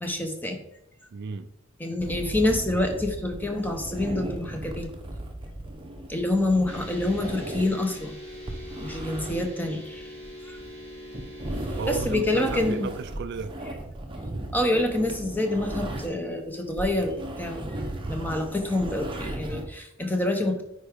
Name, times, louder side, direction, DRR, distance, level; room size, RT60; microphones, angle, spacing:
voice 1, 0.0-0.6 1.8-4.9 6.1-8.1 8.8-10.1 10.5-10.6 11.9-12.9 14.5-17.8 18.1-20.6, left 1 dB, 10° left, 0.9 m, -27 dB
voice 2, 1.1-1.5 11.8-13.5, right 5 dB, 50° right, 0.3 m, -33 dB
sound 1, 2.0-16.3 16.6-19.7, right 1 dB, 25° right, 0.8 m, -36 dB
sound 2, 6.7-12.8, equal, 30° left, 1.8 m, -42 dB
9.5 x 4.6 x 3.6 m
head